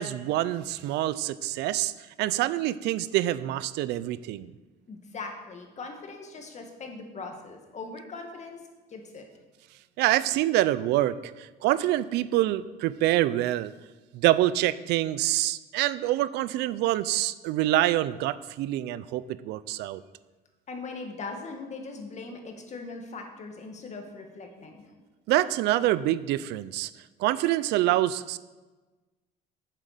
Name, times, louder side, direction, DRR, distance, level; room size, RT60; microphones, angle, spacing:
voice 1, 0.0-1.9 2.2-4.5 10.0-13.7 14.1-20.0 25.3-26.9 27.2-28.4, right 14 dB, 85° right, 16 dB, 0.5 m, -26 dB
voice 2, 4.9-8.6 8.9-9.3 20.7-24.9, left 3 dB, 45° left, 4 dB, 2.1 m, -40 dB
9.0 x 7.5 x 6.7 m, 1.2 s
cardioid pair, 110°, 17 cm